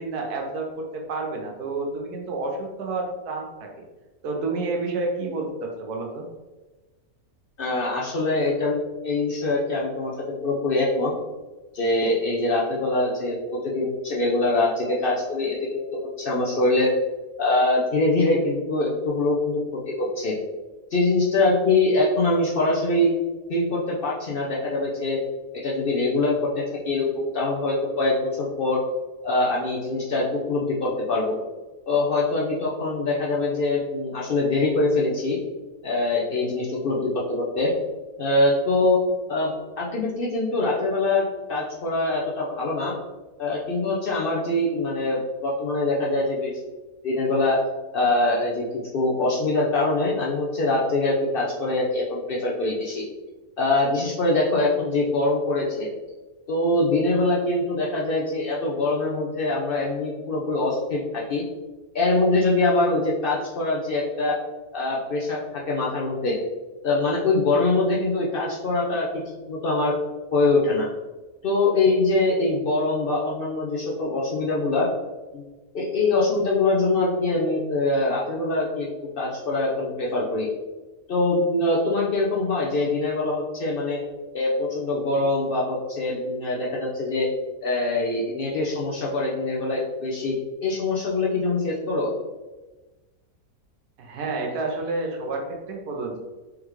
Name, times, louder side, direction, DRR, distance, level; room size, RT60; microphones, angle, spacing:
voice 1, 0.0-3.9 4.2-6.3 94.0-96.2, right 3 dB, 85° right, 1 dB, 1.3 m, -30 dB
voice 2, 7.6-8.8 9.0-10.1 10.4-11.1 11.7-15.8 16.2-16.9 17.4-19.6 19.9-20.3 20.9-23.1 23.5-25.2 25.6-28.8 29.2-31.4 31.9-35.4 35.8-37.7 38.2-39.0 39.3-42.9 43.4-46.5 47.0-47.6 47.9-48.6 48.9-53.0 53.6-55.9 56.5-61.4 61.9-64.4 64.7-66.4 66.8-69.1 69.5-69.9 70.3-70.9 71.4-74.9 75.3-75.4 75.7-78.9 79.2-80.5 81.1-84.0 84.3-87.3 87.6-90.3 90.6-92.1, left 2 dB, 65° left, -4 dB, 0.5 m, -23 dB
3.5 x 3.3 x 3.1 m, 1.2 s
omnidirectional pair, 1.6 m